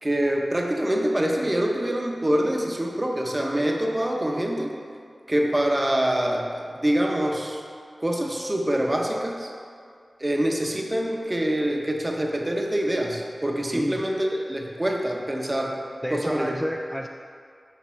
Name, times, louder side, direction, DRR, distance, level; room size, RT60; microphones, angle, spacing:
voice 1, 0.0-4.7 5.3-7.6 8.0-9.5 10.2-15.8 16.1-16.5, right 1 dB, 25° right, 0 dB, 0.9 m, -25 dB
voice 2, 13.7-14.0 16.0-17.1, equal, 5° left, 2 dB, 0.3 m, -30 dB
6.2 x 3.7 x 5.7 m, 2.2 s
wide cardioid pair, 55°, 0 cm